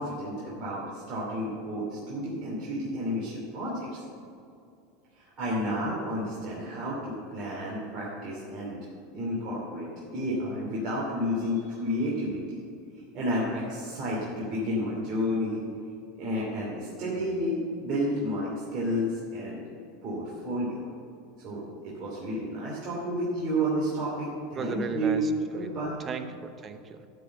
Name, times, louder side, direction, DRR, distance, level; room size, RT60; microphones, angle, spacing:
voice 1, 0.0-4.0 5.2-8.8 9.1-12.6 13.1-15.6 16.2-19.6 20.0-20.9 21.4-25.2 25.5-26.0, equal, 45° right, -6 dB, 2.7 m, -31 dB
voice 2, 24.6-27.1, right 5 dB, 30° right, 9 dB, 0.8 m, -37 dB
12.5 x 4.7 x 7.4 m, 2.5 s
hypercardioid pair, 110°, 0 cm